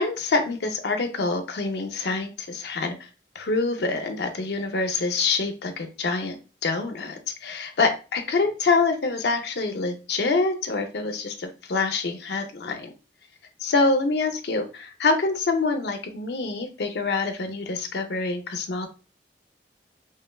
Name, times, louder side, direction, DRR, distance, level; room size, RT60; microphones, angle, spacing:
voice 1, 0.0-3.1 3.3-6.4 6.6-12.9 13.6-18.9, left 3 dB, 70° left, 6 dB, 0.5 m, -26 dB
3.3 x 2.1 x 2.2 m, 0.32 s
head